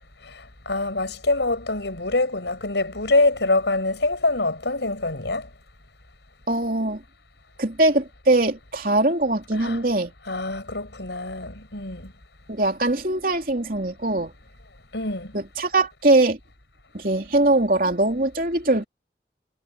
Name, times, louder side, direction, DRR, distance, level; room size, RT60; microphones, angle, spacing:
voice 1, 0.7-5.5 9.5-9.8 10.3-12.1 14.9-15.3, left 2 dB, 90° left, 6.5 m, -24 dB
voice 2, 6.5-7.0 7.6-10.1 12.5-14.3 15.3-16.4 16.9-18.8, right 2 dB, 50° right, 3.4 m, -21 dB
head